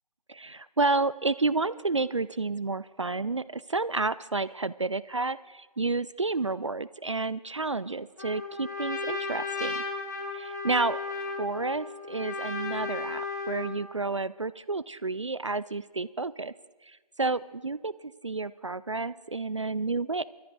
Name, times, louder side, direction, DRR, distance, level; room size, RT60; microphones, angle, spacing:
voice 1, 0.3-9.8 10.3-16.5 16.9-17.9 18.2-20.2, right 3 dB, 50° right, 18 dB, 0.4 m, -30 dB
Trumpet, 8.2-13.8, left 3 dB, 30° left, 1.4 m, -35 dB
21.5 x 13.5 x 4.0 m, 1.2 s
figure-of-eight pair, 160°, 20 cm